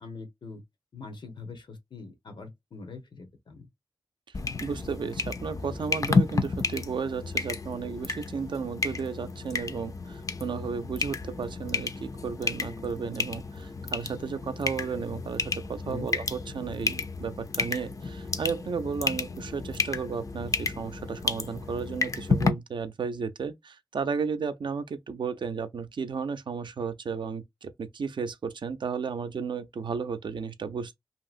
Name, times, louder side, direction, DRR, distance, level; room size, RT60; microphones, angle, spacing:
voice 1, 0.0-0.6 0.9-3.7 15.8-16.1, left 4 dB, 85° left, 0.9 m, -43 dB
sound 1, 4.3-22.5, left 4 dB, 45° left, 0.4 m, -31 dB
voice 2, 4.6-31.0, right 5 dB, 80° right, 0.4 m, -34 dB
2.8 x 2.7 x 2.4 m
wide cardioid pair, 80°, 8 cm